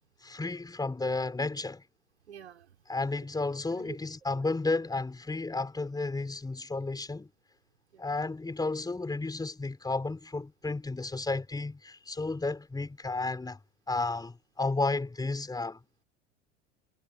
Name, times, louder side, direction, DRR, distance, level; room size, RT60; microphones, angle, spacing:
voice 1, 0.2-1.8 2.9-7.3 8.0-13.6 13.9-15.8, left 3 dB, 10° left, 4.5 m, -32 dB
voice 2, 2.3-3.2 3.7-4.0 4.3-4.4 7.9-8.1, right 8 dB, 75° right, 4.8 m, -49 dB
figure-of-eight pair, 75°, 34 cm